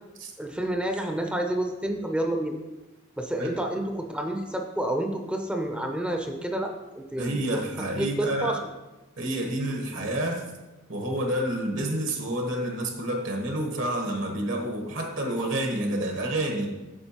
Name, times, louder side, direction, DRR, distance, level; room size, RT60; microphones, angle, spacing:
voice 1, 0.4-2.5 3.2-7.6 8.0-8.6, right 1 dB, 5° right, 3 dB, 0.5 m, -29 dB
voice 2, 7.2-8.6 9.2-10.5 10.9-16.8, right 1 dB, 70° right, 2 dB, 1.1 m, -29 dB
8.7 x 7.3 x 2.9 m, 1.1 s
head